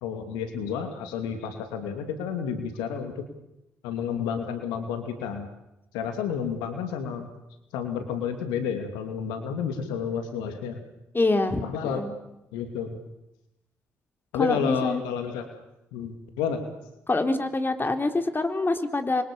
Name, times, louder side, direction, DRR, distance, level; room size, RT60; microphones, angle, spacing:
voice 1, 0.0-3.3 3.8-5.5 5.9-7.3 7.7-10.8 11.6-12.0 12.5-13.0 14.3-15.5 15.9-16.6, left 7 dB, 75° left, 7 dB, 2.6 m, -30 dB
voice 2, 11.1-12.1 14.3-15.0 17.1-19.2, left 2 dB, 30° left, 7 dB, 3.5 m, -25 dB
28.5 x 23.5 x 7.0 m, 0.91 s
hypercardioid pair, 40°, 8 cm